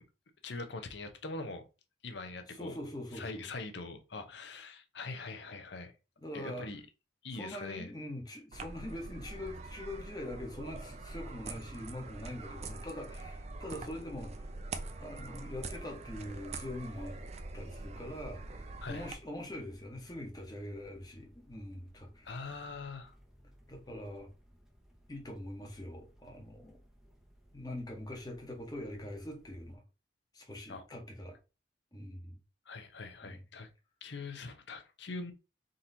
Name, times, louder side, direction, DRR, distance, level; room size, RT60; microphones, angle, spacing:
voice 1, 0.4-1.6 2.0-2.7 3.1-5.9 6.3-6.8 7.2-7.9 18.8-19.1 22.2-23.1 30.7-30.8 32.7-33.7 34.0-35.3, left 3 dB, 70° left, 0.7 m, -42 dB
voice 2, 2.5-3.5 6.2-6.7 7.3-17.2 17.5-22.4 23.7-24.3 25.1-26.8 27.5-29.8 30.3-31.3 31.9-32.4 33.2-33.4, left 1 dB, 20° left, 1.1 m, -43 dB
sound 1, 8.5-19.1, right 3 dB, 35° right, 0.4 m, -44 dB
sound 2, 15.9-29.8, equal, ahead, 0.7 m, -61 dB
3.8 x 2.9 x 3.9 m
head